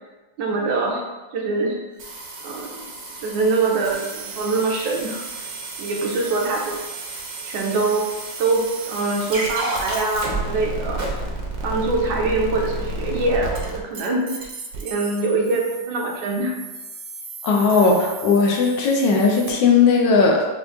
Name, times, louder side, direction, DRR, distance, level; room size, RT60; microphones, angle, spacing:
voice 1, 0.4-1.0 1.3-1.8 2.4-2.9 3.2-5.4 5.8-6.8 7.4-8.1 8.4-11.0 11.6-14.5 14.8-16.6, right 3 dB, 85° right, 0 dB, 1.4 m, -23 dB
sound 1, 2.0-19.5, right 2 dB, 60° right, 1.0 m, -32 dB
voice 2, 17.4-20.5, left 4 dB, 75° left, 0 dB, 1.3 m, -17 dB
6.4 x 2.5 x 2.4 m, 1.2 s
omnidirectional pair, 2.0 m